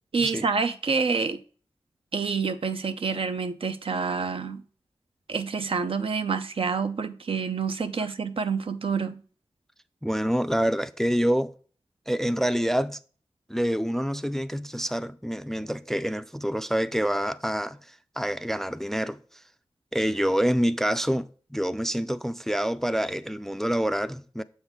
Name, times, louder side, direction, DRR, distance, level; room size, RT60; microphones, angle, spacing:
voice 1, 0.1-1.4 2.1-4.6 5.3-9.2, right 5 dB, 65° right, 0.5 m, -27 dB
voice 2, 10.0-11.5 12.1-13.0 13.5-19.2 19.9-24.4, equal, 5° left, 0.3 m, -27 dB
7.0 x 4.0 x 3.6 m
cardioid pair, 45°, 10 cm